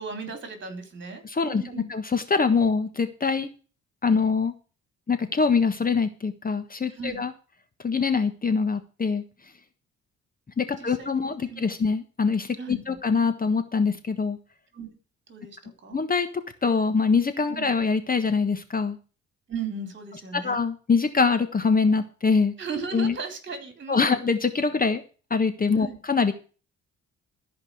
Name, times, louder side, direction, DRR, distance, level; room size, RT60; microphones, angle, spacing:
voice 1, 0.0-1.9 6.9-7.2 10.7-11.9 12.6-13.0 14.7-14.9 15.3-16.0 17.5-17.7 19.5-20.6 22.6-24.2 25.8-26.0, right 4 dB, 40° right, 7 dB, 4.0 m, -37 dB
voice 2, 1.2-3.5 4.0-4.5 5.1-7.3 7.8-9.2 10.6-14.4 15.9-19.0 20.4-22.5 22.9-23.2 23.9-25.0 25.3-26.3, left 5 dB, 30° left, 10 dB, 1.4 m, -24 dB
13.5 x 5.4 x 7.9 m, 0.36 s
cardioid pair, 90°, 30 cm